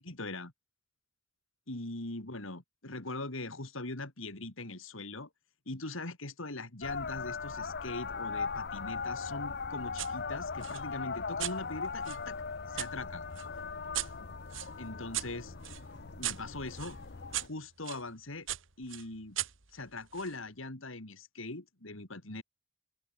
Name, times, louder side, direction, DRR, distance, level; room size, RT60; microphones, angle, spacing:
voice 1, 0.0-0.5 1.7-5.3 5.7-12.4 12.7-13.2 14.8-15.5 16.2-17.0 17.4-18.5 18.8-19.4 19.7-22.4, left 2 dB, 75° left, 3.0 m, -41 dB
sound 1, 6.8-17.5, left 5 dB, 50° left, 0.8 m, -39 dB
sound 2, 10.0-10.1 10.6-12.9 13.4-18.0 18.5-20.4, right 13 dB, 65° right, 2.3 m, -40 dB
open air
head